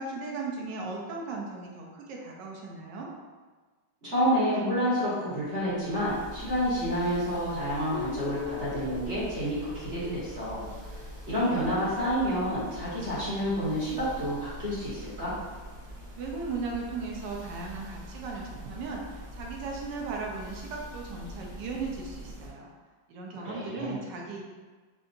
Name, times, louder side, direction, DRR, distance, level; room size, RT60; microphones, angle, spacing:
voice 1, 0.0-3.1 16.2-22.7 23.1-24.4, right 4 dB, 75° right, -1 dB, 1.0 m, -37 dB
voice 2, 4.0-10.7 11.3-15.3 23.3-23.9, equal, 35° right, -11 dB, 1.4 m, -29 dB
sound 1, 5.5-22.5, equal, 55° right, 1.4 m, -44 dB
Guitar, 7.9-11.9, left 6 dB, 80° left, 0.8 m, -41 dB
5.1 x 2.4 x 2.5 m, 1.4 s
omnidirectional pair, 2.3 m